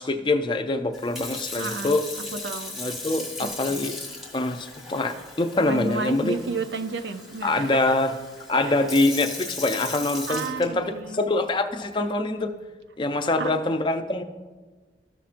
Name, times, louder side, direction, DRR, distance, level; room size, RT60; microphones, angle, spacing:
voice 1, 0.0-2.1 2.8-4.0 4.3-6.4 7.4-8.1 8.5-12.5 13.0-14.2, left 2 dB, 25° left, 6 dB, 0.5 m, -24 dB
Sink (filling or washing) / Fill (with liquid), 0.9-11.2 11.8-12.1, left 2 dB, ahead, 1.0 m, -38 dB
voice 2, 1.6-1.9 2.4-2.8 3.4-3.8 5.6-7.8 8.6-8.7 10.3-11.3 13.4-13.5, right 3 dB, 80° right, 10 dB, 0.5 m, -32 dB
14.0 x 5.7 x 2.5 m, 1.3 s
head